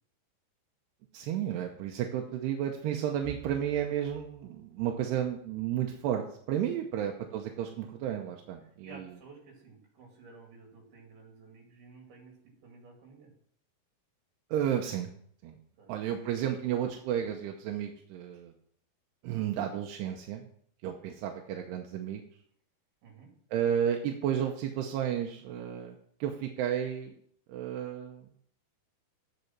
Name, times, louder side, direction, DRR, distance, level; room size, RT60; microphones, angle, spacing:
voice 1, 1.1-6.2 6.5-9.0 14.5-15.1 15.4-15.6 15.9-18.5 19.2-20.5 20.8-22.2 23.5-27.1 27.5-28.3, right 10 dB, 85° right, 2 dB, 2.9 m, -32 dB
voice 2, 8.6-13.3 15.8-16.2 23.0-23.3, right 4 dB, 65° right, 1 dB, 4.2 m, -53 dB
8.2 x 6.8 x 5.9 m, 0.63 s
omnidirectional pair, 4.7 m